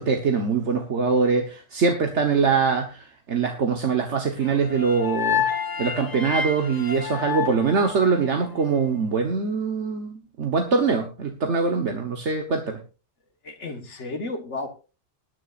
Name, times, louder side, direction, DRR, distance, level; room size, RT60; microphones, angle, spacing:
voice 1, 0.0-5.5 5.8-12.8, right 5 dB, 75° right, 3 dB, 1.6 m, -23 dB
sound 1, 4.4-8.6, left 7 dB, 20° left, 0.9 m, -29 dB
voice 2, 13.4-14.7, left 2 dB, 90° left, 6 dB, 1.8 m, -33 dB
21.0 x 10.0 x 2.5 m, 0.32 s
omnidirectional pair, 1.2 m